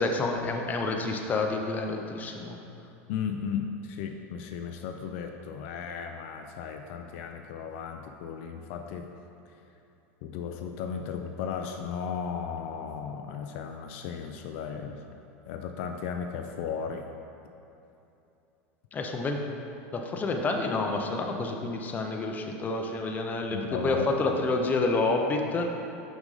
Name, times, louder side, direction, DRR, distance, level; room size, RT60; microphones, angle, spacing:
voice 1, 0.0-2.6 18.9-19.4 19.9-23.6 23.8-25.7, left 3 dB, 25° left, 2 dB, 0.6 m, -28 dB
voice 2, 3.1-9.1 10.2-15.0 15.5-17.0 23.5-24.2, left 7 dB, 65° left, 4 dB, 0.4 m, -35 dB
6.0 x 5.2 x 3.9 m, 2.9 s
supercardioid pair, 120°, 7 cm